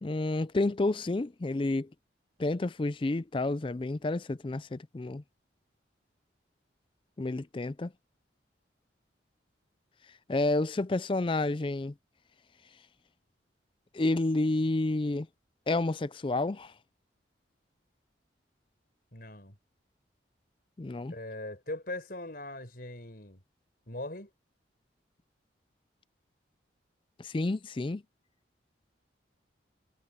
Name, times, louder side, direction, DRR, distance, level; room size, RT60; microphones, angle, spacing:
voice 1, 0.0-1.9 2.4-5.2 7.2-7.9 10.3-11.9 13.9-15.3 15.7-16.7 20.8-21.1 27.2-28.0, left 2 dB, 25° left, 0.4 m, -30 dB
voice 2, 19.1-19.6 21.1-23.4 23.9-24.3, left 1 dB, 50° left, 5.0 m, -40 dB
head